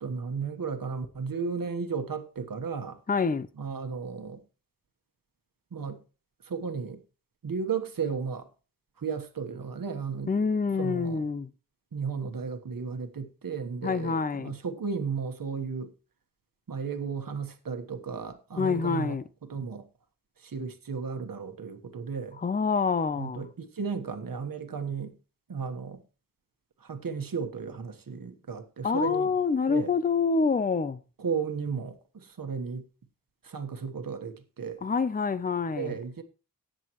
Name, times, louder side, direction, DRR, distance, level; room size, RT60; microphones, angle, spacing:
voice 1, 0.0-3.0 3.6-4.4 5.7-6.0 6.4-7.0 7.4-8.5 9.0-10.3 10.8-11.2 11.9-15.9 16.7-19.2 19.5-19.9 20.4-22.4 23.2-25.1 25.5-26.0 26.8-29.3 29.7-29.9 31.2-32.8 33.4-34.8 35.8-36.2, right 5 dB, 85° right, 1.3 m, -34 dB
voice 2, 3.1-3.5 10.3-11.5 13.8-14.5 18.6-19.2 22.4-23.5 28.8-31.0 34.8-36.0, left 5 dB, 25° left, 0.6 m, -26 dB
18.0 x 7.7 x 3.0 m
wide cardioid pair, 100°, 33 cm